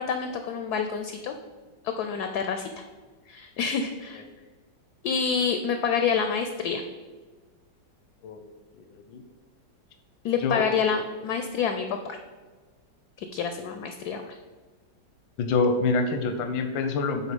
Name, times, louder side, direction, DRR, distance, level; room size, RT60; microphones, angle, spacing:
voice 1, 0.0-1.4 1.8-2.7 3.3-4.2 5.0-6.8 10.2-12.2 13.2-14.4, left 6 dB, 70° left, 6 dB, 0.9 m, -28 dB
voice 2, 8.9-9.2 10.4-10.6 15.4-17.3, left 4 dB, 90° left, 7 dB, 1.4 m, -26 dB
6.5 x 4.4 x 5.3 m, 1.4 s
omnidirectional pair, 2.0 m